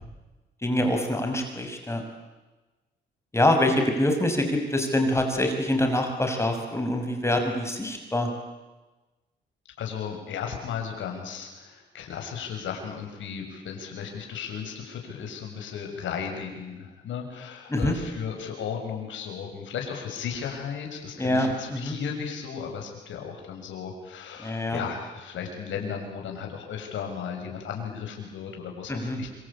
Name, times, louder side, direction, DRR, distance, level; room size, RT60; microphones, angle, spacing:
voice 1, 0.6-2.0 3.3-8.3 17.7-18.0 21.2-22.0 24.4-24.8 28.9-29.2, left 1 dB, 15° left, 4 dB, 6.4 m, -25 dB
voice 2, 9.8-29.4, left 7 dB, 75° left, 2 dB, 6.7 m, -35 dB
26.0 x 25.5 x 8.8 m, 1.2 s
cardioid pair, 90°, 20 cm